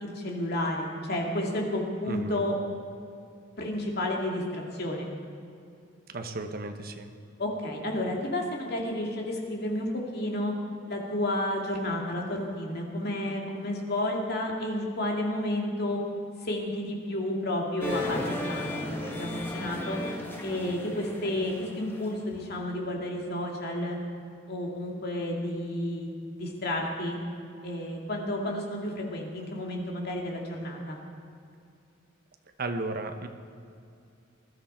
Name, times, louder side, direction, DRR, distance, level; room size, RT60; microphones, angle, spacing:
voice 1, 0.0-2.6 3.6-5.1 7.4-10.5 10.9-16.0 16.4-20.0 20.4-24.0 24.5-26.1 26.4-27.2 27.6-31.0, left 1 dB, 55° left, 0 dB, 2.4 m, -31 dB
voice 2, 2.1-2.4 6.1-7.1 32.6-33.3, right 2 dB, 50° right, 6 dB, 1.0 m, -34 dB
sound 1, 17.8-22.4, left 2 dB, 10° left, 1.6 m, -35 dB
20.0 x 12.5 x 4.4 m, 2.5 s
head